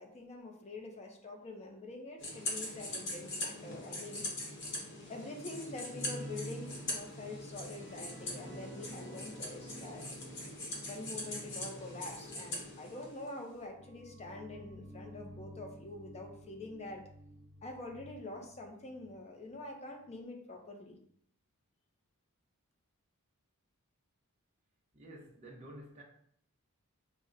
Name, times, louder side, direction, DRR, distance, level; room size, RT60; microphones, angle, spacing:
voice 1, 0.0-4.2 5.1-10.1 10.9-17.0 17.6-21.0, left 2 dB, 30° left, 0.4 m, -46 dB
sound 1, 2.2-13.4, left 2 dB, 55° left, 0.9 m, -42 dB
sound 2, 5.9-19.2 19.5-19.7 20.1-20.2, right 1 dB, 70° right, 0.9 m, -51 dB
voice 2, 24.9-26.0, right 1 dB, 30° right, 0.6 m, -50 dB
5.3 x 2.0 x 2.4 m
head